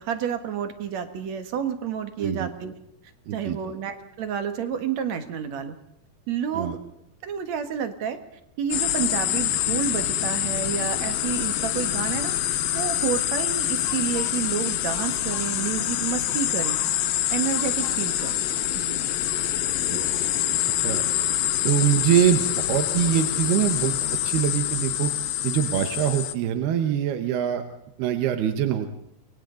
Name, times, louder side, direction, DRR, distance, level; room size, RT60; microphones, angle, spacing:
voice 1, 0.0-2.7 3.3-5.8 6.3-6.8 7.2-8.2 8.6-16.8 17.3-18.5 18.7-19.0, right 8 dB, 55° right, 8 dB, 2.3 m, -30 dB
voice 2, 2.2-2.5 3.3-3.6 6.5-6.8 19.9-20.0 20.8-21.1 21.6-24.0 24.3-25.1 25.4-27.6 28.0-28.9, right 10 dB, 80° right, 7 dB, 3.2 m, -23 dB
sound 1, 8.7-26.4, left 12 dB, 75° left, 2.7 m, -26 dB
sound 2, 13.5-24.2, left 6 dB, 60° left, 3.2 m, -45 dB
30.0 x 23.5 x 3.9 m, 0.78 s
omnidirectional pair, 4.5 m